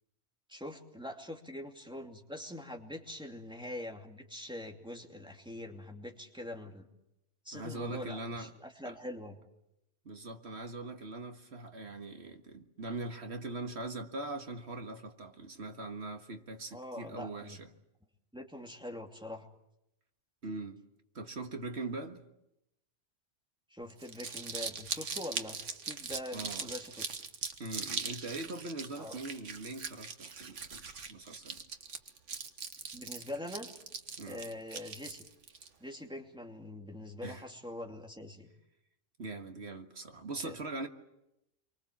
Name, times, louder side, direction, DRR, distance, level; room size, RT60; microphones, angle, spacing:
voice 1, 0.5-6.9 7.4-9.4 16.7-17.6 18.3-19.5 23.7-25.6 25.8-27.1 29.0-29.2 32.9-33.7 34.3-35.3 35.8-38.5 40.4-40.6, left 1 dB, 5° right, 2.7 m, -43 dB
voice 2, 7.5-8.5 8.9-9.0 10.1-17.7 20.4-20.8 21.2-22.3 26.3-26.7 27.6-31.6 34.2-34.4 37.2-37.4 39.2-40.9, right 2 dB, 65° right, 1.9 m, -41 dB
Crumpling crinkling, 23.9-35.7, right 5 dB, 85° right, 1.7 m, -41 dB
28.5 x 24.0 x 7.3 m
omnidirectional pair, 1.2 m